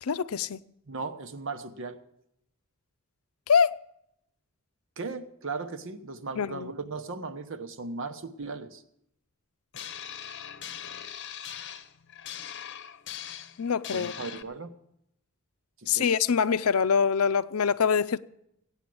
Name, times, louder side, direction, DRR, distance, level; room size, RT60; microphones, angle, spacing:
voice 1, 0.0-0.6 3.5-3.8 6.4-6.7 13.6-14.1 15.9-18.2, left 6 dB, 85° left, 0.5 m, -24 dB
voice 2, 0.9-2.0 5.0-8.8 13.9-14.7 15.8-16.1, right 3 dB, 65° right, 1.1 m, -37 dB
sound 1, 9.7-14.4, left 9 dB, 55° left, 0.8 m, -41 dB
16.0 x 9.1 x 7.7 m
head